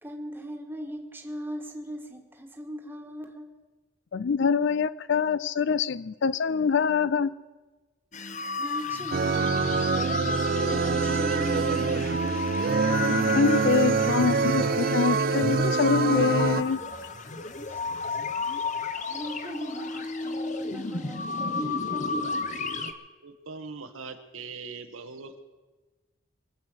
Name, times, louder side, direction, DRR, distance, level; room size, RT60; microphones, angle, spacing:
voice 1, 0.0-3.5 8.6-12.5 17.6-18.2 19.1-22.4, equal, 10° right, 1.5 m, -40 dB
voice 2, 4.1-7.3 13.0-16.8, left 5 dB, 55° left, 0.4 m, -25 dB
sound 1, 8.1-22.9, left 3 dB, 35° left, 0.9 m, -32 dB
sound 2, 9.1-16.6, right 4 dB, 45° right, 0.4 m, -25 dB
voice 3, 13.6-14.0 23.2-25.4, right 4 dB, 75° right, 1.3 m, -41 dB
24.0 x 8.1 x 6.4 m
head